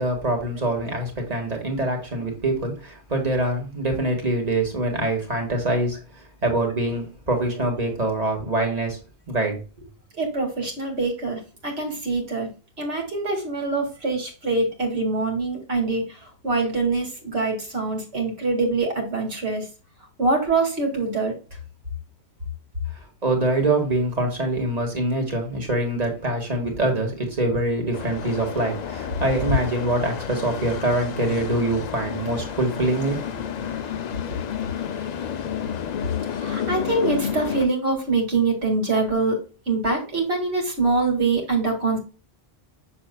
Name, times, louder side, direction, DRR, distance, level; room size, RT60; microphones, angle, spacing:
voice 1, 0.0-6.0 6.4-9.0 9.3-9.9 23.2-33.5, right 2 dB, 40° right, 2 dB, 1.8 m, -24 dB
voice 2, 10.1-12.5 12.8-19.7 20.2-21.3 36.3-39.4 39.7-42.0, right 3 dB, 80° right, 1 dB, 2.4 m, -24 dB
sound 1, 27.9-37.7, left 8 dB, 50° left, 0.6 m, -31 dB
6.8 x 6.6 x 2.2 m, 0.34 s
omnidirectional pair, 1.1 m